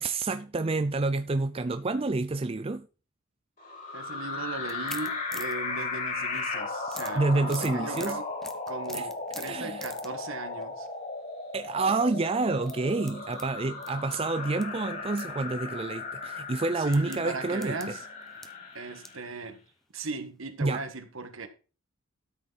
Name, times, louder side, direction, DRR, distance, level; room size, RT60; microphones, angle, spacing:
voice 1, 0.0-2.9 7.2-8.2 8.9-9.1 9.4-9.8 11.5-17.9 20.6-20.8, right 3 dB, 25° right, 0.4 m, -28 dB
sound 1, 3.6-19.3, left 3 dB, 40° left, 5.0 m, -36 dB
voice 2, 3.9-8.3 8.7-10.9 16.8-18.0 18.7-19.6 19.9-21.5, right 3 dB, 65° right, 1.6 m, -38 dB
sound 2, 4.6-6.5 6.9-10.2 10.6-10.9 11.7-11.9 12.5-14.6 14.9-15.3 15.7-15.8 16.6-19.2 19.7-19.8 20.1-20.2, equal, ahead, 0.9 m, -45 dB
12.5 x 6.7 x 4.0 m
head